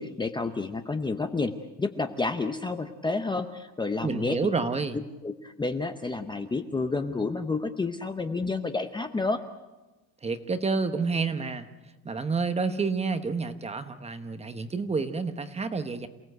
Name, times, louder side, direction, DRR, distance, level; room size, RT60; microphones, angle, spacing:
voice 1, 0.0-1.5 1.8-4.5 5.2-9.4, left 3 dB, 10° left, 7 dB, 0.7 m, -30 dB
voice 2, 4.0-5.0 10.2-11.7 12.0-16.1, right 4 dB, 15° right, 10 dB, 1.0 m, -29 dB
28.0 x 17.5 x 7.9 m, 1.1 s
cardioid pair, 160°, 38 cm